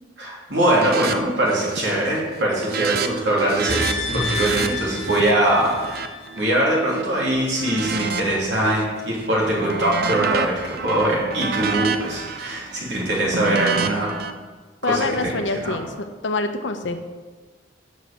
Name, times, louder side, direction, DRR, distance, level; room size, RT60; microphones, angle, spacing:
voice 1, 0.2-5.9 6.4-14.1 14.8-15.8, right 1 dB, 70° right, -4 dB, 3.1 m, -22 dB
sound 1, 0.7-1.2 1.4-1.9 2.2-7.0 7.5-8.8 9.2-14.3, right 5 dB, 55° right, 0.6 m, -29 dB
sound 2, 3.7-6.9 7.2-7.3, left 2 dB, 40° left, 1.8 m, -29 dB
voice 2, 14.8-17.0, left 3 dB, 80° left, 7 dB, 0.8 m, -25 dB
7.4 x 6.2 x 6.8 m, 1.4 s
head